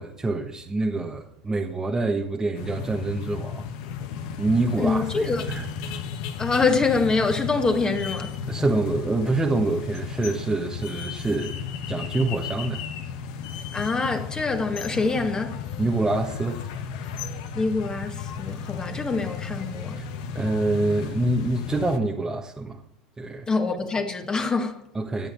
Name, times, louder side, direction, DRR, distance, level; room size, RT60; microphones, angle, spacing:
voice 1, 0.0-3.7 4.4-5.7 8.5-11.6 11.9-12.8 15.8-16.6 19.9-20.1 20.3-22.8 23.2-23.5 24.9-25.3, right 2 dB, 15° right, 1.5 m, -26 dB
sound 1, 2.6-22.0, left 7 dB, 65° left, 1.5 m, -34 dB
voice 2, 4.8-5.4 6.4-8.4 13.7-15.6 17.6-20.0 23.5-24.8, left 3 dB, 20° left, 2.0 m, -25 dB
13.0 x 8.2 x 6.7 m
hypercardioid pair, 90°, 4 cm